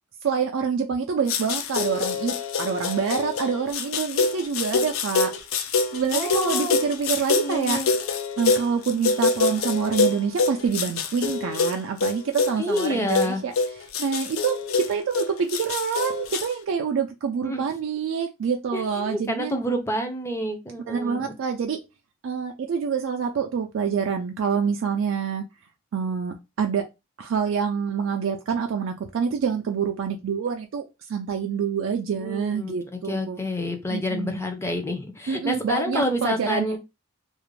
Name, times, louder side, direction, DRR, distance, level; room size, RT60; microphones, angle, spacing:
voice 1, 0.2-5.3 5.9-7.8 8.4-13.5 14.0-19.5 20.9-21.8 22.2-25.5 25.9-26.9 27.2-30.8 31.1-33.4 33.9-34.4 35.3-36.8, right 6 dB, 70° right, 0.3 m, -26 dB
sound 1, 1.3-16.5, left 4 dB, 85° left, 0.4 m, -26 dB
voice 2, 6.1-6.7 7.3-7.9 12.6-13.4 17.4-17.6 18.7-21.3 32.2-32.8 33.1-36.8, left 1 dB, 15° left, 0.4 m, -28 dB
2.4 x 2.1 x 3.0 m
head